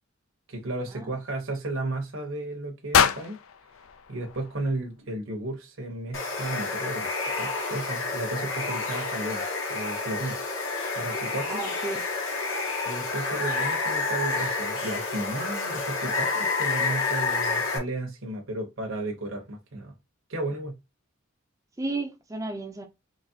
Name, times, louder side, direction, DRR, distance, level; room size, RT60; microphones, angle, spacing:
voice 1, 0.5-3.4 4.1-7.1 7.4-9.4 9.7-10.4 11.0-11.6 12.9-19.9 20.3-20.7, right 2 dB, 70° right, 1.0 m, -33 dB
sound 1, 2.9-5.1, left 7 dB, 85° left, 0.5 m, -26 dB
Water, 6.1-17.8, left 3 dB, 70° left, 1.4 m, -29 dB
voice 2, 11.5-12.0 21.8-22.9, right 2 dB, 15° right, 0.5 m, -33 dB
4.0 x 3.0 x 2.8 m
head